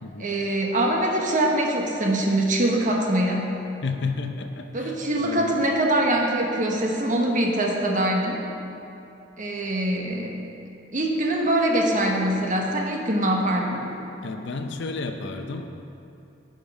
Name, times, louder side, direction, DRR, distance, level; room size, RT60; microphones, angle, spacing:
voice 1, 0.2-3.6 4.7-8.5 9.4-10.4 10.9-13.9, right 1 dB, 45° right, 0 dB, 1.1 m, -23 dB
voice 2, 3.8-4.9 5.2-5.6 14.2-15.7, left 3 dB, 65° left, 5 dB, 0.6 m, -31 dB
10.5 x 5.2 x 5.3 m, 2.8 s
head